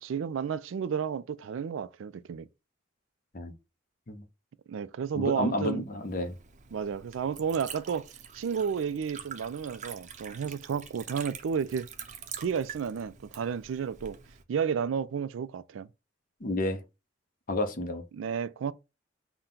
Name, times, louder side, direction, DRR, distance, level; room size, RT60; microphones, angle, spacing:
voice 1, 0.0-2.5 4.7-5.9 6.7-8.1 8.3-11.9 12.4-14.2 14.5-15.9 18.1-18.7, right 7 dB, 85° right, 0.4 m, -32 dB
voice 2, 5.1-6.3 16.4-16.8 17.5-18.0, left 1 dB, 45° left, 0.7 m, -30 dB
Liquid, 5.9-14.4, right 7 dB, 40° right, 0.6 m, -46 dB
5.8 x 2.2 x 3.8 m
head